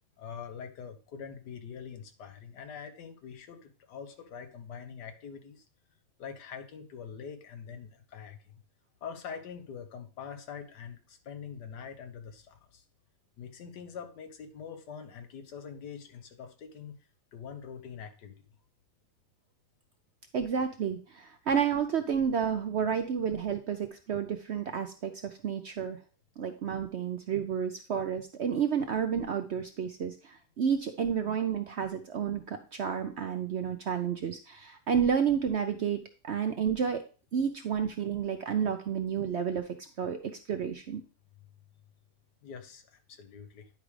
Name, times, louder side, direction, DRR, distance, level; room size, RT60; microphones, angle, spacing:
voice 1, 0.2-5.6 6.2-8.6 9.0-12.8 13.4-17.0 17.3-18.4 42.4-43.7, left 7 dB, 85° left, 8 dB, 1.6 m, -44 dB
voice 2, 20.3-26.0 26.4-37.0 37.3-41.0, right 7 dB, 60° right, 7 dB, 0.7 m, -31 dB
10.0 x 4.9 x 3.2 m, 0.36 s
omnidirectional pair, 1.7 m